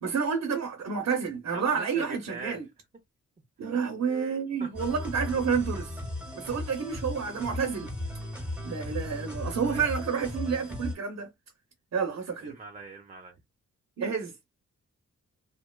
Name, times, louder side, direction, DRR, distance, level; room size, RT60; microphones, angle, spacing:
voice 1, 0.0-2.6 3.6-5.9 6.4-7.9 8.6-11.3 11.9-12.6 14.0-14.3, right 6 dB, 65° right, 0.7 m, -29 dB
voice 2, 1.5-2.6 3.6-3.7 4.6-4.7 9.6-9.8 12.4-13.4, right 4 dB, 25° right, 0.6 m, -42 dB
sound 1, 4.7-10.9, left 1 dB, 5° right, 1.1 m, -36 dB
2.8 x 2.2 x 2.2 m
cardioid pair, 100°, 29 cm